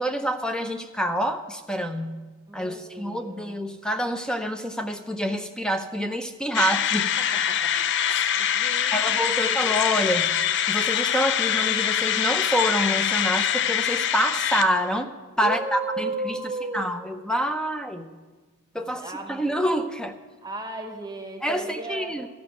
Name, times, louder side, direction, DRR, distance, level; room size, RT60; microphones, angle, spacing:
voice 1, 0.0-7.1 8.2-8.3 8.9-10.4 10.7-15.1 15.4-16.3 16.7-18.1 18.7-20.2 21.4-22.3, equal, 5° left, 7 dB, 0.6 m, -27 dB
voice 2, 2.5-3.6 6.6-6.8 7.2-8.0 8.4-9.6 15.4-16.9 18.7-19.4 20.4-22.2, right 2 dB, 15° right, 4 dB, 1.0 m, -35 dB
sound 1, 6.5-15.0, left 9 dB, 55° left, 0.4 m, -24 dB
13.0 x 5.9 x 9.0 m, 1.3 s
head